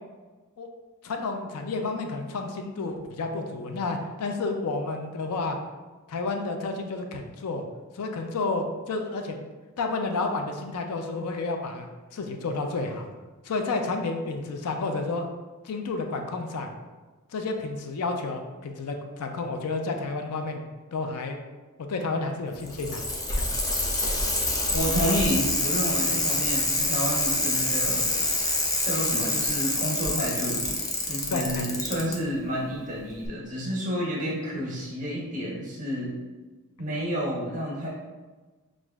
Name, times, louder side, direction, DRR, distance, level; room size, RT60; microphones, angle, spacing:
voice 1, 1.0-5.6 6.1-7.6 7.9-9.4 9.8-13.1 13.4-15.2 15.6-16.7 17.3-20.6 20.9-21.4 21.9-23.0 23.4-23.5 31.3-31.7, left 3 dB, 85° left, 4 dB, 0.4 m, -30 dB
Bicycle, 22.5-32.1 33.2-33.3, left 2 dB, 15° left, 0.5 m, -26 dB
voice 2, 24.7-30.7 31.0-36.2 36.8-37.9, equal, 35° right, -5 dB, 1.3 m, -30 dB
6.1 x 2.5 x 2.3 m, 1.3 s
head